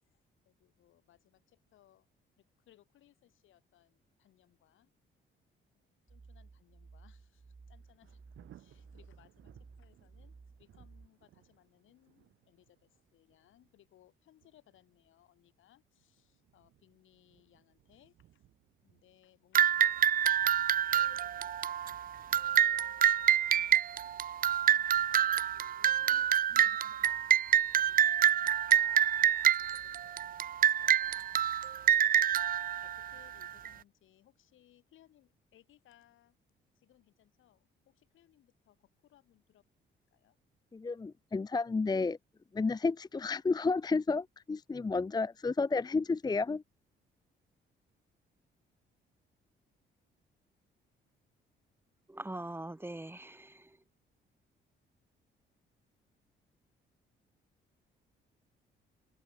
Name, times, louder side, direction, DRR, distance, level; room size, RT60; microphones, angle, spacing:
voice 1, 0.1-2.1 2.4-4.9 5.7-8.2 8.5-20.5 20.9-36.4 36.7-39.6 40.1-40.4, left 13 dB, 80° left, 6.9 m, -66 dB
sound 1, 6.1-11.1, right 4 dB, 25° right, 2.1 m, -56 dB
Thunder, 7.7-26.5 26.9-27.0, right 13 dB, 80° right, 6.0 m, -66 dB
sound 2, 19.6-33.7, right 10 dB, 45° right, 0.5 m, -27 dB
voice 2, 40.7-42.2 42.5-46.6, left 4 dB, 20° left, 0.7 m, -31 dB
voice 3, 52.1-53.8, right 1 dB, 10° right, 2.8 m, -42 dB
cardioid pair, 90°, 20 cm